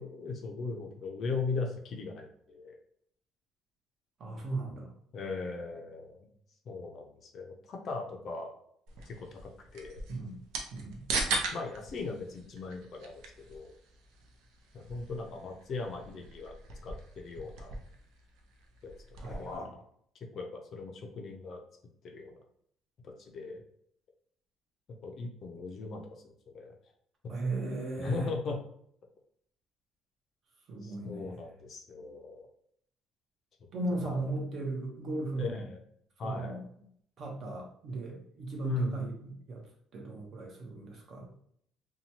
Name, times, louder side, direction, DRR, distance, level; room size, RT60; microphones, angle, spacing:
voice 1, 0.0-2.8 5.1-6.2 6.7-8.5 9.0-10.0 11.5-13.2 13.5-13.7 14.7-16.5 16.8-17.7 18.8-18.9 19.2-19.8 20.3-21.6 22.0-22.4 23.0-23.6 25.0-26.7 27.2-27.3 28.0-28.6 30.8-32.4 34.0-34.2 35.3-35.8 36.2-36.6 38.6-39.0, left 4 dB, 40° left, 2 dB, 0.4 m, -38 dB
voice 2, 4.2-4.9 10.1-10.4 10.7-11.0 19.2-19.7 27.3-28.3 30.7-31.3 33.7-35.6 36.2-36.6 37.2-39.6 39.9-41.3, right 2 dB, 40° right, 0 dB, 0.7 m, -36 dB
sound 1, 8.9-19.6, right 3 dB, 90° right, 0.5 m, -40 dB
2.8 x 2.2 x 2.7 m, 0.66 s
cardioid pair, 155°, 0 cm